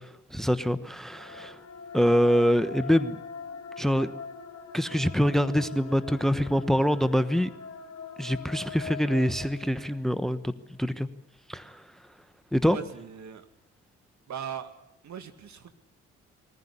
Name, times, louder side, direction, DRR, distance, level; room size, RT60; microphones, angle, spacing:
voice 1, 0.3-1.6 1.9-3.2 3.8-4.1 4.7-7.5 8.2-10.5 10.8-11.1 11.5-11.8 12.5-12.8, equal, ahead, 14 dB, 1.1 m, -25 dB
sound 1, 1.0-10.1, left 5 dB, 50° left, 1.6 m, -42 dB
voice 2, 12.7-13.5 14.3-14.7 15.0-15.7, right 8 dB, 55° right, 9 dB, 2.0 m, -39 dB
21.5 x 15.0 x 10.0 m, 0.87 s
hypercardioid pair, 45°, 33 cm